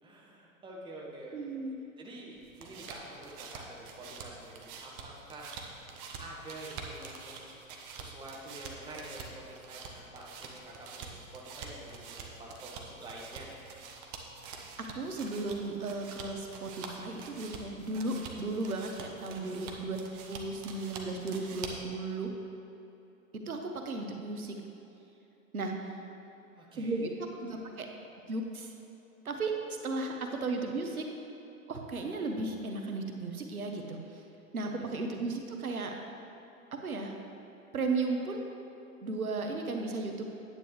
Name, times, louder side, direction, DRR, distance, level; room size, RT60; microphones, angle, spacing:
voice 1, 0.0-1.6 2.0-5.8 6.2-7.4 7.9-13.5 19.3-19.7 26.5-27.0 34.6-34.9, right 1 dB, 10° right, -3 dB, 1.4 m, -47 dB
voice 2, 1.3-1.8 14.5-20.0 20.3-22.3 23.3-24.6 25.5-26.0 26.8-27.9 28.3-28.7 29.2-31.1 31.7-34.2 34.5-35.9 36.7-37.2 37.7-38.5 39.0-40.2, right 3 dB, 90° right, 3 dB, 1.0 m, -35 dB
sound 1, 2.3-21.9, right 4 dB, 40° right, 1.1 m, -46 dB
9.2 x 9.2 x 3.2 m, 2.9 s
hypercardioid pair, 115°, 42 cm